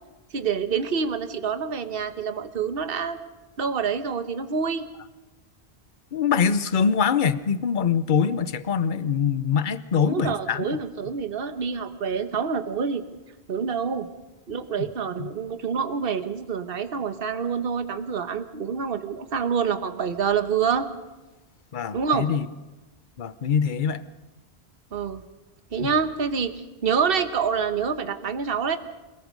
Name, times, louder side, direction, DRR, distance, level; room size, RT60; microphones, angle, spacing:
voice 1, 0.3-3.2 3.6-4.9 10.0-13.0 13.5-14.1 14.5-20.8 21.9-22.3 24.9-25.2 25.7-28.8, right 6 dB, 60° right, 9 dB, 1.3 m, -27 dB
voice 2, 6.1-10.8 14.8-14.9 15.2-15.3 21.7-22.5 23.2-24.0 25.8-25.9, left 6 dB, 50° left, 14 dB, 0.9 m, -24 dB
28.0 x 18.5 x 5.3 m, 1.1 s
omnidirectional pair, 1.1 m